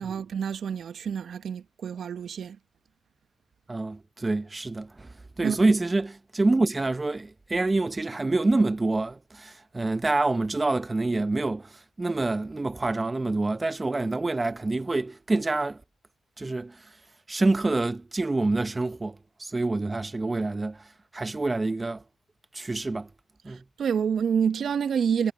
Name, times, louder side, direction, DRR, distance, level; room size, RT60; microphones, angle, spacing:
voice 1, 0.0-2.6 5.4-5.7 23.5-25.3, right 7 dB, 65° right, 1.1 m, -28 dB
voice 2, 3.7-5.1 5.4-15.8 16.4-16.8 17.3-20.9 21.1-22.0 22.5-23.1 23.4-23.6, right 2 dB, 25° right, 0.9 m, -27 dB
hypercardioid pair, 45°, 0 cm